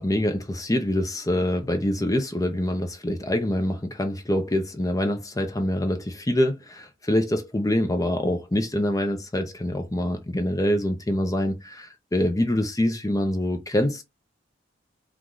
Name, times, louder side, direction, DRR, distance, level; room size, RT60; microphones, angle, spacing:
voice 1, 0.0-14.0, left 1 dB, 20° left, 0.7 m, -25 dB
4.7 x 2.4 x 3.9 m
head